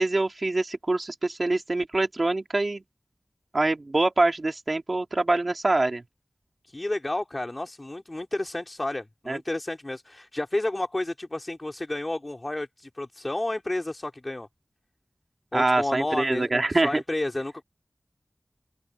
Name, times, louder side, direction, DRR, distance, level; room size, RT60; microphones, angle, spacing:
voice 1, 0.0-2.8 3.5-6.0 9.3-9.4 15.5-17.0, right 2 dB, 60° right, 2.4 m, -24 dB
voice 2, 6.6-14.5 15.5-17.6, left 1 dB, 40° left, 3.3 m, -31 dB
open air
wide cardioid pair, 50°, 0 cm